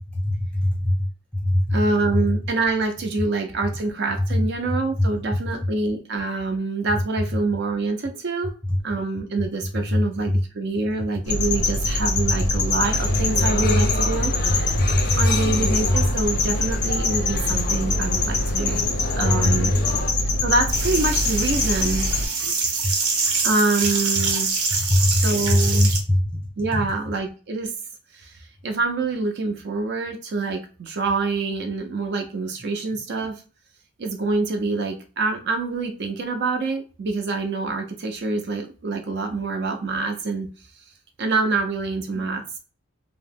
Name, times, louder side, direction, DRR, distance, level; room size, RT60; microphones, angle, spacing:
voice 1, 0.1-1.1 1.5-1.8 9.9-10.0 14.8-15.0 18.7-18.8 19.2-19.5 22.8-22.9 24.9-26.2, left 1 dB, 5° left, 0.6 m, -21 dB
voice 2, 1.7-8.5 8.8-14.3 15.1-18.8 19.2-19.7 20.4-22.1 23.4-24.6 25.1-25.9 26.6-27.7 28.1-33.4 34.0-40.5 41.2-42.6, right 3 dB, 50° right, 0.4 m, -26 dB
sound 1, 11.3-22.3, left 2 dB, 85° left, 0.6 m, -24 dB
sound 2, 12.7-20.1, left 3 dB, 40° left, 0.4 m, -31 dB
sound 3, 20.7-26.0, right 4 dB, 90° right, 0.8 m, -25 dB
2.7 x 2.0 x 3.4 m
head